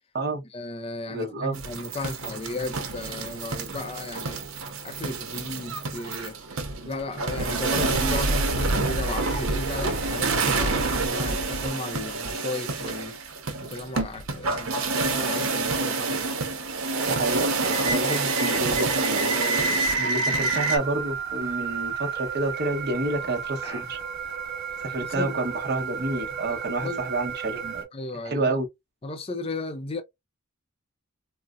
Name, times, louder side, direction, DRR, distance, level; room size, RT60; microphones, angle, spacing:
voice 1, 0.5-4.4 4.8-6.3 6.9-13.2 13.7-16.3 25.0-25.4 26.8-27.0 27.9-28.6 29.0-30.0, left 2 dB, 25° left, 0.4 m, -35 dB
voice 2, 1.1-1.6 17.1-24.0 24.8-27.8 28.2-28.7, right 2 dB, 50° right, 0.8 m, -29 dB
sound 1, 1.5-20.8, right 3 dB, 80° right, 0.8 m, -27 dB
sound 2, 20.4-27.8, right 8 dB, 15° right, 1.4 m, -33 dB
4.0 x 2.0 x 2.4 m
head